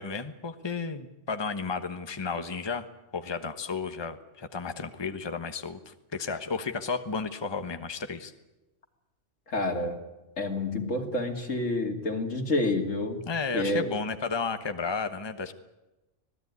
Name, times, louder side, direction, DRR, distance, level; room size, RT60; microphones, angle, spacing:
voice 1, 0.0-2.9 3.1-8.3 13.3-15.5, left 5 dB, 20° left, 8 dB, 1.1 m, -33 dB
voice 2, 9.5-10.0 10.4-13.2 13.5-13.9, left 2 dB, 85° left, 3 dB, 3.1 m, -28 dB
25.5 x 18.0 x 9.6 m, 1.0 s
omnidirectional pair, 1.3 m